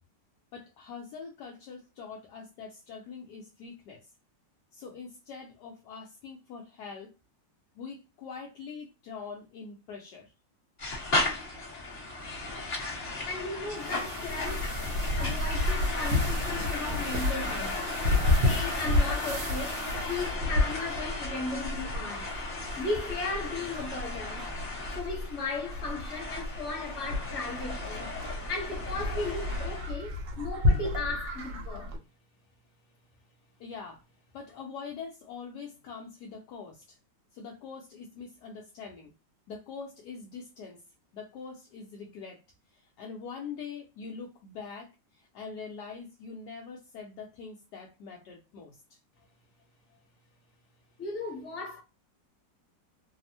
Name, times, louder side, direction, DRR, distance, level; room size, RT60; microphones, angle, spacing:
voice 1, 0.5-4.1 4.7-7.1 7.8-10.3 33.6-34.0 34.3-37.0 37.3-39.1 39.5-40.8 41.1-42.4 42.7-49.0, left 5 dB, 75° left, 1.1 m, -43 dB
sound 1, 10.8-29.9, left 2 dB, 30° left, 0.9 m, -36 dB
voice 2, 13.3-14.7 15.1-17.7 18.4-19.8 20.1-22.3 22.8-24.4 24.9-28.1 28.5-31.9 51.0-51.8, left 3 dB, 45° left, 1.3 m, -36 dB
sound 2, 13.8-20.3, equal, 60° right, 0.9 m, -39 dB
Livestock farm animals working animals, 14.3-32.0, left 2 dB, 75° right, 1.5 m, -31 dB
3.4 x 2.0 x 2.7 m
omnidirectional pair, 2.0 m